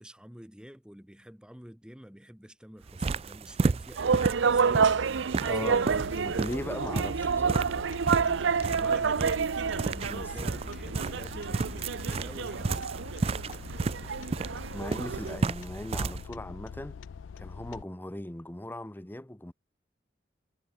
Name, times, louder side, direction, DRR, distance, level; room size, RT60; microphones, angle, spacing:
voice 1, 0.0-6.0 8.8-13.1, equal, 5° right, 1.0 m, -49 dB
sound 1, 2.8-16.2, right 4 dB, 30° right, 0.3 m, -33 dB
sound 2, 4.0-15.4, right 5 dB, 80° right, 0.6 m, -29 dB
voice 2, 5.4-5.8 6.2-7.8 10.1-10.3 14.7-17.0 17.4-19.5, left 1 dB, 10° left, 0.6 m, -38 dB
sound 3, 5.8-17.8, left 6 dB, 85° left, 0.4 m, -44 dB
head